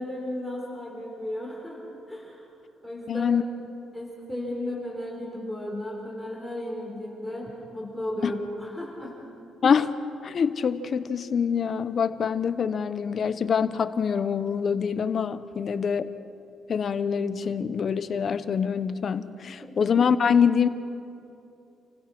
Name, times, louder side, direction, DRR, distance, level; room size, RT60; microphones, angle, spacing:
voice 1, 0.0-1.8 2.1-2.5 2.8-3.3 3.9-9.2 19.4-19.8, left 1 dB, 5° left, -2 dB, 4.1 m, -34 dB
voice 2, 3.1-3.4 8.2-8.3 9.6-9.9 10.2-16.1 16.7-20.7, left 6 dB, 50° left, 13 dB, 0.9 m, -25 dB
28.0 x 16.0 x 6.1 m, 2.7 s
cardioid pair, 90°, 0 cm